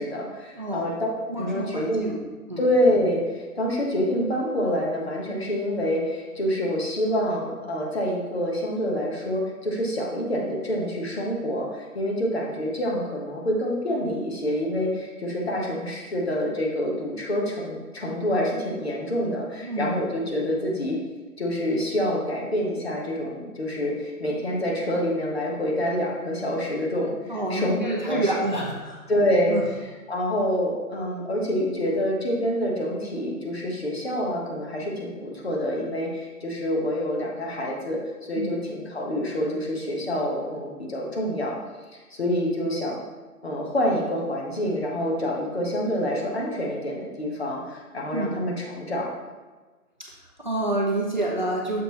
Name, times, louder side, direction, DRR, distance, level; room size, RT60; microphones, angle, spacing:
voice 1, 0.0-2.1 2.6-21.0 21.4-27.8 28.1-28.6 29.1-41.5 41.9-43.0 43.4-49.1, equal, 45° left, -2 dB, 1.2 m, -27 dB
voice 2, 0.6-0.9 1.3-2.2 2.5-2.6 19.6-20.0 27.3-29.0 29.5-29.6 38.4-38.5 48.1-48.4 50.4-51.8, right 1 dB, 30° right, -3 dB, 0.6 m, -28 dB
6.6 x 3.8 x 4.1 m, 1.3 s
figure-of-eight pair, 155°, 45 cm